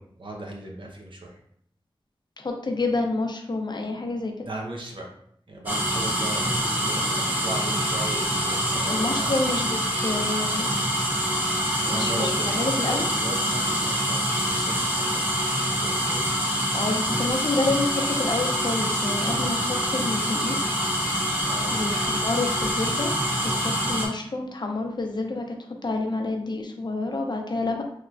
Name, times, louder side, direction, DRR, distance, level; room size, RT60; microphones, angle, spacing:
voice 1, 0.0-1.4 4.5-5.1 5.5-9.3 11.9-15.3 15.5-16.4 21.4-21.8, right 2 dB, 60° right, 0 dB, 0.7 m, -37 dB
voice 2, 2.4-4.3 8.8-10.7 11.8-13.1 16.7-20.6 21.7-23.1 23.5-25.6 25.8-27.8, left 2 dB, 50° left, 2 dB, 0.6 m, -28 dB
sound 1, 5.7-24.1, equal, 15° right, 0.9 m, -25 dB
3.2 x 2.9 x 2.4 m, 0.68 s
wide cardioid pair, 55°, 9 cm